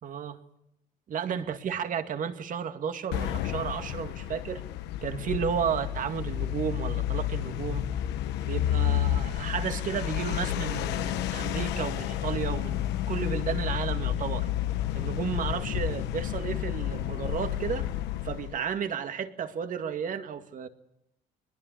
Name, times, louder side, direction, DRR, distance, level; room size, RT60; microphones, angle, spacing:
voice 1, 0.0-0.4 1.1-4.6 5.0-7.8 8.4-14.5 14.9-17.9 18.2-20.7, right 7 dB, 50° right, 8 dB, 2.2 m, -33 dB
sound 1, 3.1-18.6, left 11 dB, 85° left, 1.3 m, -30 dB
22.5 x 21.0 x 8.5 m, 0.84 s
cardioid pair, 110°, 17 cm